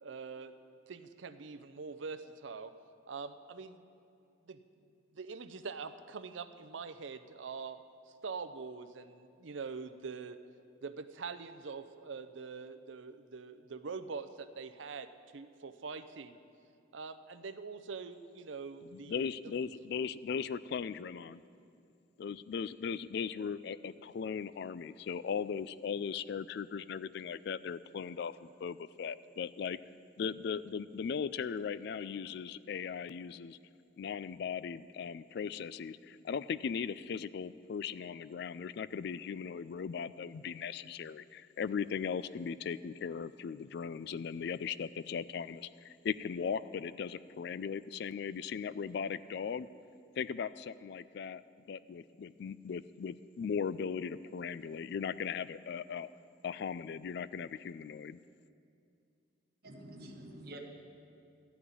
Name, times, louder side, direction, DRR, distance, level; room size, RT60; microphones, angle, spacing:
voice 1, 0.0-0.5 0.9-2.7 3.1-3.8 4.5-4.6 5.1-7.8 8.1-10.4 10.8-16.4 16.9-19.2, right 5 dB, 75° right, 11 dB, 0.6 m, -44 dB
voice 2, 18.9-21.4 22.2-29.8 30.2-33.6 34.0-49.7 50.2-51.4 51.7-56.1 56.4-58.2, left 6 dB, 55° left, 16 dB, 0.3 m, -38 dB
voice 3, 59.6-60.6, right 1 dB, 50° right, 1 dB, 1.4 m, -48 dB
13.0 x 6.1 x 9.4 m, 2.5 s
head